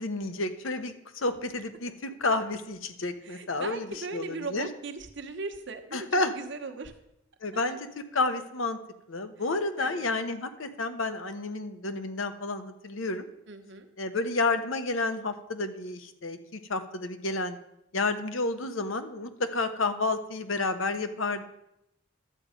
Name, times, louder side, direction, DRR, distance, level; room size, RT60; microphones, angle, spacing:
voice 1, 0.0-4.7 5.9-6.3 7.4-7.9 8.1-8.8 9.1-13.3 14.0-17.6 17.9-21.4, left 3 dB, 90° left, 9 dB, 1.0 m, -30 dB
voice 2, 3.2-6.1 6.3-6.9 7.5-7.8 9.8-10.1 13.5-13.9, right 3 dB, 65° right, 6 dB, 1.1 m, -38 dB
11.5 x 7.6 x 5.1 m, 0.82 s
head